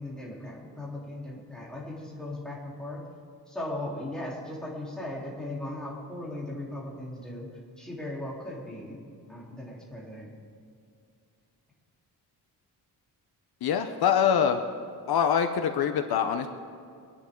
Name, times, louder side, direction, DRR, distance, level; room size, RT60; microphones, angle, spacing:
voice 1, 0.0-3.0 3.5-7.5 7.8-9.0 9.3-10.3, left 1 dB, ahead, -5 dB, 3.6 m, -37 dB
voice 2, 13.6-14.6 15.1-16.5, left 8 dB, 70° left, 7 dB, 0.9 m, -24 dB
24.5 x 11.0 x 3.8 m, 2.3 s
cardioid pair, 130°, 39 cm